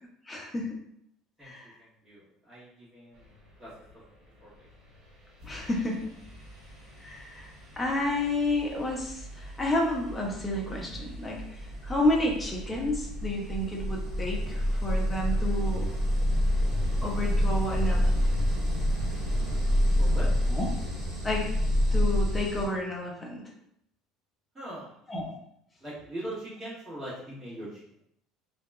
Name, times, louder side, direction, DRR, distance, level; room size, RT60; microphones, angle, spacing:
voice 1, 0.3-0.7 1.4-1.7 5.4-6.1 7.0-7.5 7.8-15.9 17.0-18.1 20.5-20.7 21.2-21.6 21.9-23.4 25.1-25.4, left 1 dB, 15° left, -1 dB, 0.5 m, -30 dB
voice 2, 1.8-3.3 3.6-3.7 4.4-4.7 20.0-20.3 24.5-25.0 25.8-27.8, right 1 dB, 15° right, -10 dB, 1.4 m, -41 dB
sound 1, 4.9-5.0 5.4-22.7, equal, 35° right, 1.5 m, -29 dB
2.7 x 2.3 x 2.3 m, 0.75 s
cardioid pair, 140°, 0 cm